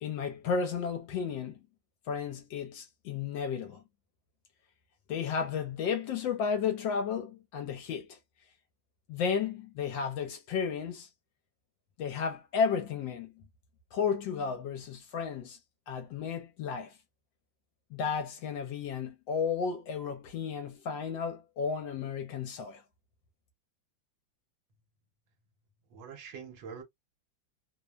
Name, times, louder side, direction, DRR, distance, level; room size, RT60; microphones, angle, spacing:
voice 1, 0.0-1.6 2.1-3.8 5.1-8.2 9.1-11.1 12.0-13.3 13.9-15.6 15.9-16.9 17.9-22.8, left 6 dB, 75° left, 1.2 m, -33 dB
voice 2, 25.9-26.8, right 6 dB, 70° right, 1.4 m, -44 dB
3.3 x 2.1 x 2.2 m
omnidirectional pair, 2.2 m